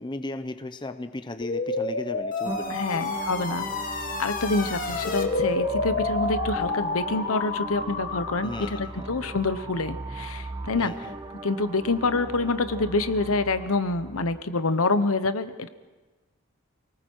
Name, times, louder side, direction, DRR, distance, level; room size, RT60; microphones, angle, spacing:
voice 1, 0.0-2.8 8.4-9.1 10.8-11.1, left 2 dB, 20° left, 9 dB, 0.6 m, -36 dB
sound 1, 1.4-8.9, left 3 dB, 40° left, 1.7 m, -29 dB
sound 2, 2.4-14.4, right 2 dB, 20° right, 0.8 m, -38 dB
voice 2, 2.7-3.7 4.2-10.9 11.4-15.7, left 3 dB, 75° left, 11 dB, 1.0 m, -26 dB
29.0 x 19.5 x 4.6 m, 1.2 s
head